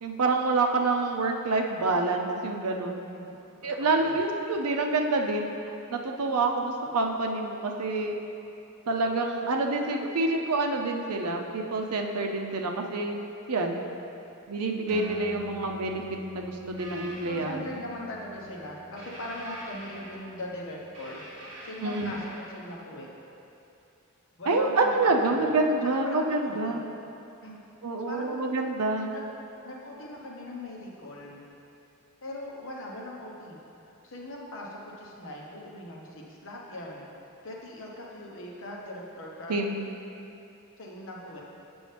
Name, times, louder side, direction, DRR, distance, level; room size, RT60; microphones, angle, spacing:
voice 1, 0.0-3.0 3.6-8.1 8.9-13.2 13.5-13.8 14.5-16.0 16.3-17.6 21.8-22.1 24.5-26.8 27.8-29.1 39.5-39.7, right 3 dB, 85° right, 2 dB, 0.6 m, -27 dB
voice 2, 3.6-4.1 7.8-7.9 17.3-21.2 21.6-23.1 24.4-24.9 25.2-26.8 27.4-27.6 28.1-28.4 29.1-29.2 29.6-31.4 32.2-33.6 34.0-37.0 37.4-39.6 40.8-41.4, left 1 dB, 60° left, -2 dB, 1.0 m, -40 dB
sound 1, 14.9-21.8, left 2 dB, 30° right, 1.4 m, -45 dB
sound 2, 16.8-17.4 19.0-20.4 20.9-22.5, right 1 dB, 55° right, 1.6 m, -44 dB
7.9 x 6.1 x 3.4 m, 2.8 s
head